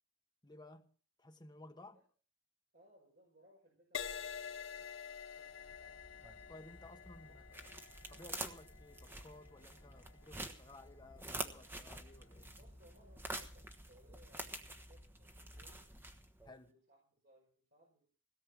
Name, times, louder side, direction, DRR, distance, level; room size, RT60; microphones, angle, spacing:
voice 1, 0.4-2.0 6.5-7.7 8.1-12.5 16.4-16.7, left 2 dB, 20° left, 1.3 m, -57 dB
voice 2, 2.7-4.9 5.4-6.0 12.6-15.9 16.6-18.1, right 1 dB, 50° right, 5.3 m, -67 dB
Crash cymbal, 3.9-11.6 12.3-12.6, left 8 dB, 85° left, 1.1 m, -49 dB
sound 1, 5.5-16.6, right 1 dB, 10° right, 1.2 m, -48 dB
17.0 x 6.6 x 8.7 m
head